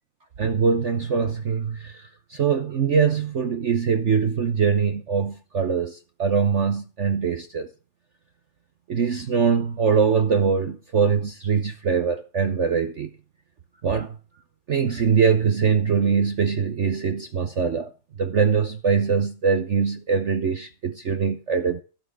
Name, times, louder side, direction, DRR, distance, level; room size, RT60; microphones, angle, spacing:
voice 1, 0.4-1.9 2.3-7.7 8.9-13.1 13.8-14.2 14.7-17.9 18.2-21.8, right 6 dB, 55° right, 0.8 m, -22 dB
14.0 x 7.6 x 6.2 m
omnidirectional pair, 2.3 m